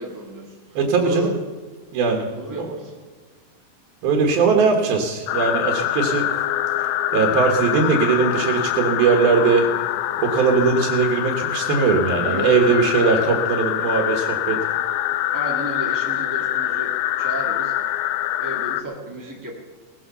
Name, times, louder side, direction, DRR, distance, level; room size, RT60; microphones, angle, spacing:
voice 1, 0.0-1.3 2.3-2.9 12.1-13.3 15.3-18.0 18.4-19.5, right 1 dB, 15° right, -2 dB, 0.7 m, -33 dB
voice 2, 0.7-1.3 1.9-2.2 2.6-2.7 4.0-6.3 7.1-9.7 10.2-14.6, right 5 dB, 75° right, 1 dB, 3.3 m, -19 dB
sound 1, 5.3-18.8, left 13 dB, 80° left, 2.4 m, -24 dB
18.5 x 10.0 x 6.9 m, 1.5 s
omnidirectional pair, 4.4 m